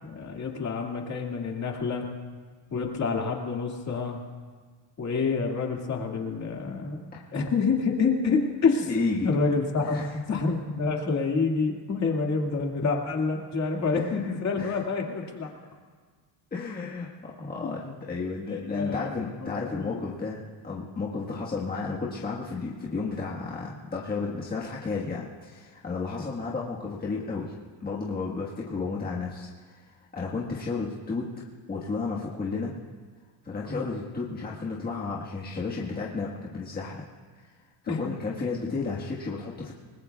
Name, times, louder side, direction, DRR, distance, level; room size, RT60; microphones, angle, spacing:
voice 1, 0.0-2.1 2.7-4.2 5.0-8.9 9.2-10.0 10.3-15.5 17.6-17.8 18.5-19.1 19.4-20.0 33.7-34.0 37.9-38.0, left 4 dB, 35° left, 0 dB, 2.2 m, -28 dB
voice 2, 8.9-9.3 9.8-10.2 13.9-14.3 14.5-14.8 16.5-27.5 27.8-31.3 31.7-32.8 33.4-37.0 37.8-39.7, left 4 dB, 20° left, -4 dB, 1.5 m, -32 dB
29.5 x 20.0 x 2.4 m, 1.5 s
cardioid pair, 155°, 47 cm